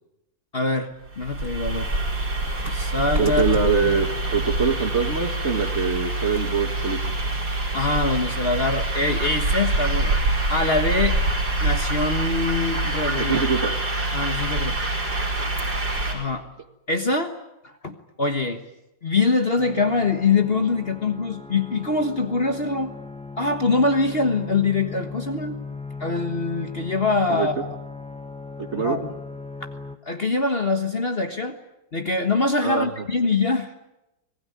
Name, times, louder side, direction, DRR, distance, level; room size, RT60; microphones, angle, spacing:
voice 1, 0.5-1.9 2.6-4.0 7.7-10.2 10.5-11.2 11.6-13.4 14.1-14.8 16.1-16.5 16.9-17.3 17.6-18.6 19.0-22.9 23.4-25.6 26.0-27.7 28.7-29.1 30.0-31.6 31.9-33.7, left 3 dB, 35° left, 6 dB, 1.5 m, -24 dB
sound 1, 1.1-16.1, right 2 dB, 70° right, 5.7 m, -25 dB
voice 2, 3.2-7.0 13.2-13.8 27.3-27.5 28.7-29.0 32.6-32.9, right 5 dB, 40° right, 7 dB, 1.9 m, -23 dB
sound 2, 19.6-30.0, left 3 dB, 5° left, 1.3 m, -38 dB
25.5 x 19.5 x 9.7 m, 0.92 s
omnidirectional pair, 2.0 m